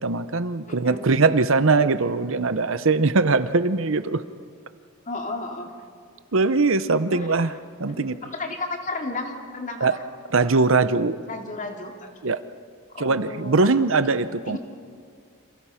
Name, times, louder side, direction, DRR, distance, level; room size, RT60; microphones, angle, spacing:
voice 1, 0.0-4.2 6.3-7.5 7.8-8.1 9.8-10.0 10.3-11.2 12.2-12.4 13.0-14.6, right 3 dB, 65° right, 13 dB, 0.8 m, -21 dB
voice 2, 0.7-1.1 5.0-5.7 7.1-7.6 7.9-10.0 11.3-12.1 12.9-13.7 14.5-14.6, left 2 dB, 35° left, 3 dB, 2.7 m, -33 dB
29.0 x 27.5 x 5.8 m, 2.1 s
head